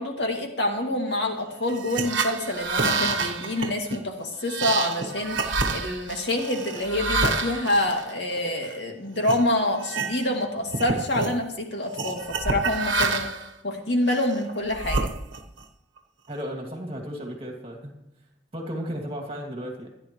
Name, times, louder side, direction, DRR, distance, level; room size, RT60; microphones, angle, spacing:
voice 1, 0.0-13.3 13.6-15.1, left 1 dB, 60° left, 2 dB, 2.4 m, -27 dB
sound 1, 1.7-8.7 9.2-9.4 9.8-10.4 10.7-11.4 12.0-13.5 14.1-15.6, right 3 dB, 70° right, 1.2 m, -28 dB
voice 2, 16.3-17.9 18.5-19.9, equal, 30° right, 2 dB, 2.5 m, -34 dB
25.0 x 10.5 x 3.2 m, 0.88 s
head